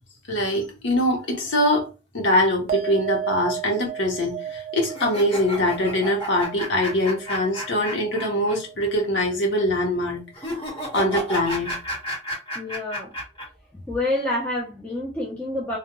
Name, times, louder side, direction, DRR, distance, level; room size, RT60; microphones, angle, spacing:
voice 1, 0.3-1.9 2.1-10.2 10.9-11.7, left 1 dB, 75° left, 0.8 m, -23 dB
sound 1, 2.7-9.4 9.7-10.3, right 10 dB, 50° right, 0.5 m, -35 dB
sound 2, 4.9-8.6 8.8-8.9 10.3-13.4, equal, 30° left, 1.3 m, -32 dB
voice 2, 12.5-13.1 13.7-15.8, left 1 dB, 10° left, 0.4 m, -28 dB
2.2 x 2.2 x 2.9 m
head